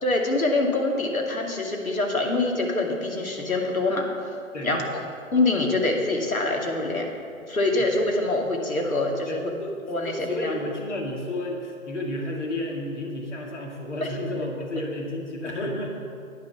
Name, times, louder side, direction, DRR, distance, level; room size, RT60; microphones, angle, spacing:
voice 1, 0.0-4.1 4.6-5.0 5.3-7.1 7.5-9.5 9.9-10.5 14.0-14.1, left 2 dB, 80° left, 1 dB, 2.4 m, -25 dB
voice 2, 4.5-4.9 7.8-7.9 9.3-9.7 10.0-16.0, left 1 dB, 55° left, 0 dB, 2.2 m, -32 dB
10.0 x 9.4 x 5.9 m, 2.4 s
figure-of-eight pair, 160°, 42 cm